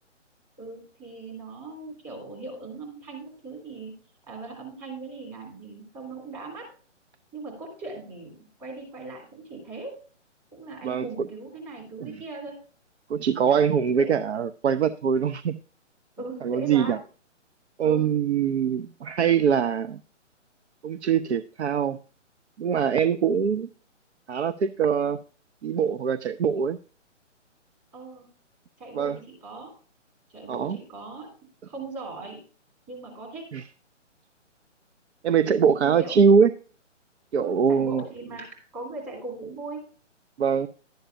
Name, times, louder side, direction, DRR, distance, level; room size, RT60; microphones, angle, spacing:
voice 1, 0.6-4.0 4.3-6.7 7.3-9.9 10.5-12.6 13.4-13.6 13.9-14.1 16.2-17.0 17.8-18.2 27.9-28.3 28.8-29.7 30.3-31.3 31.7-32.4 32.9-33.5 35.8-36.1 37.3-38.5 38.7-39.8, right 2 dB, 20° right, -2 dB, 3.2 m, -39 dB
voice 2, 13.1-15.6 16.4-17.0 17.8-20.0 20.8-22.0 22.6-23.7 24.3-25.2 25.6-26.8 28.9-29.2 30.5-30.8 33.5-33.6 35.2-36.5 37.3-38.0 40.4-40.7, right 7 dB, 65° right, 12 dB, 0.5 m, -23 dB
11.5 x 7.9 x 2.6 m, 0.40 s
hypercardioid pair, 150°, 37 cm